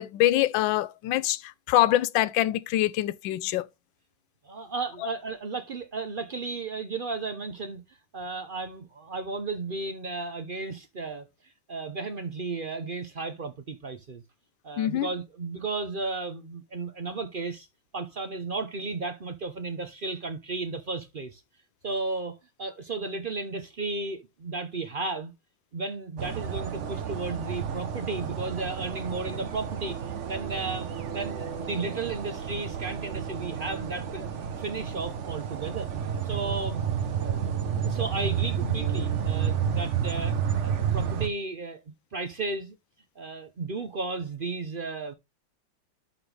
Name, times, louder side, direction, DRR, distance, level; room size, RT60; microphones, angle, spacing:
voice 1, 0.0-3.6 14.8-15.1, left 14 dB, 80° left, 1.3 m, -24 dB
voice 2, 4.4-7.8 8.1-11.3 11.7-14.2 14.6-17.7 17.9-21.4 21.8-25.3 25.7-30.0 30.3-34.3 34.6-35.9 36.2-37.0 37.2-40.4 40.6-41.8 42.1-42.8 43.2-45.1, right 3 dB, 75° right, 0.4 m, -34 dB
sound 1, 26.2-41.3, right 8 dB, 50° right, 1.0 m, -31 dB
11.5 x 4.0 x 3.3 m
omnidirectional pair, 2.1 m